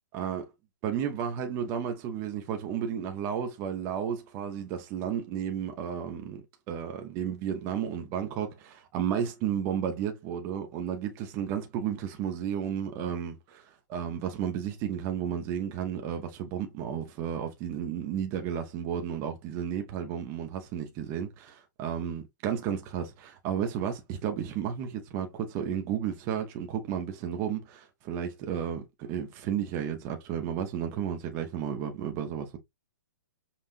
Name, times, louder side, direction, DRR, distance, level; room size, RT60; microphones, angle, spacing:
voice 1, 0.1-0.5 0.8-28.8 29.1-32.6, right 8 dB, 25° right, 0.7 m, -33 dB
5.6 x 2.4 x 2.5 m
hypercardioid pair, 155°, 10 cm